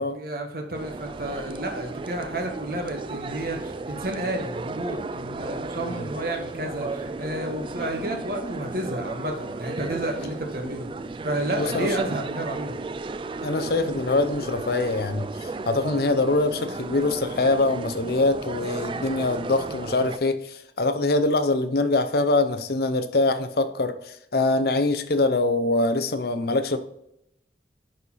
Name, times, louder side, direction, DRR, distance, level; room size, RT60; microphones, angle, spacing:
voice 1, 0.1-10.9 11.2-12.8, right 1 dB, 55° right, 2 dB, 1.5 m, -31 dB
sound 1, 0.7-20.2, right 3 dB, 30° right, 0.3 m, -34 dB
voice 2, 11.6-11.9 13.4-26.8, left 2 dB, 55° left, 10 dB, 0.6 m, -24 dB
10.5 x 4.2 x 4.0 m, 0.78 s
head